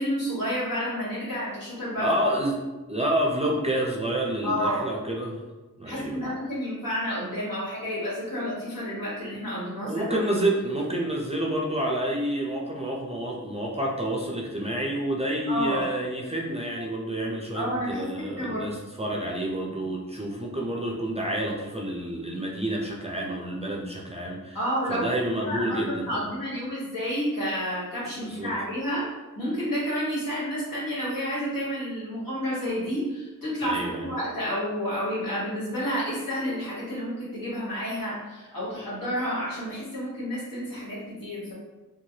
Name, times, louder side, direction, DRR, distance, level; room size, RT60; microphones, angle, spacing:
voice 1, 0.0-2.1 4.4-4.8 5.8-10.0 15.5-15.9 17.5-18.1 18.4-18.7 24.5-25.0 25.4-29.0 29.4-41.5, equal, 80° left, -9 dB, 1.5 m, -30 dB
voice 2, 2.0-2.6 2.9-5.4 5.8-6.3 9.8-24.6 24.9-26.2 28.2-28.5 33.6-34.1, right 1 dB, 20° right, -2 dB, 0.4 m, -29 dB
3.0 x 2.3 x 2.7 m, 1.2 s
wide cardioid pair, 75°, 34 cm